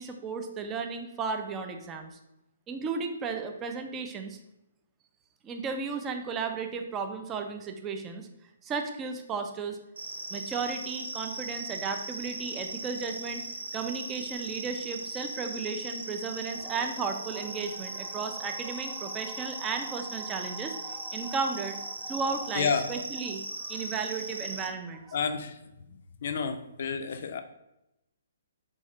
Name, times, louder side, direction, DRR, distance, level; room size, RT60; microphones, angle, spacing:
voice 1, 0.0-2.2 2.7-4.4 5.4-8.3 8.6-9.8 10.3-13.4 13.7-25.1, right 5 dB, 20° right, 5 dB, 0.4 m, -34 dB
sound 1, 10.0-24.7, right 2 dB, 80° right, 0.5 m, -39 dB
voice 2, 22.5-22.9 25.1-25.6 26.2-27.4, left 6 dB, 55° left, 7 dB, 0.3 m, -30 dB
3.2 x 2.6 x 3.4 m, 0.89 s
figure-of-eight pair, 130°, 0 cm